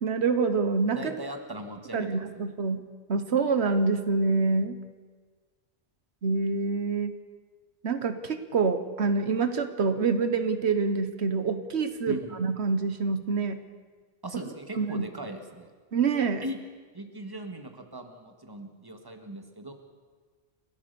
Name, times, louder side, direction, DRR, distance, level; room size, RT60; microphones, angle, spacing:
voice 1, 0.0-1.2 1.9-2.8 3.1-4.8 6.2-7.1 7.8-13.6 14.8-15.1 15.9-16.4, right 4 dB, 85° right, 10 dB, 1.4 m, -26 dB
voice 2, 0.9-2.5 12.1-12.4 14.2-15.7 16.4-16.6 16.9-19.7, right 1 dB, 20° right, 5 dB, 1.8 m, -39 dB
29.5 x 13.5 x 6.9 m, 1.5 s
omnidirectional pair, 1.1 m